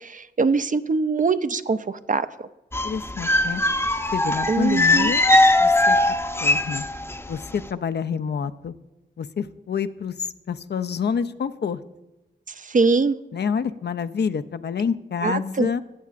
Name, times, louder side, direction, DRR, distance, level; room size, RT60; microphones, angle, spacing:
voice 1, 0.1-2.2 4.5-5.1 12.7-13.2 15.2-15.7, right 4 dB, 45° right, 12 dB, 0.5 m, -22 dB
sound 1, 2.7-7.2 7.4-7.6, left 2 dB, 10° left, 0.6 m, -20 dB
voice 2, 2.8-3.6 4.1-5.2 5.6-6.0 6.4-6.9 7.3-8.7 9.2-10.1 10.5-11.8 13.3-15.8, left 6 dB, 65° left, 11 dB, 0.4 m, -27 dB
14.5 x 8.2 x 2.5 m, 0.99 s
cardioid pair, 45°, 19 cm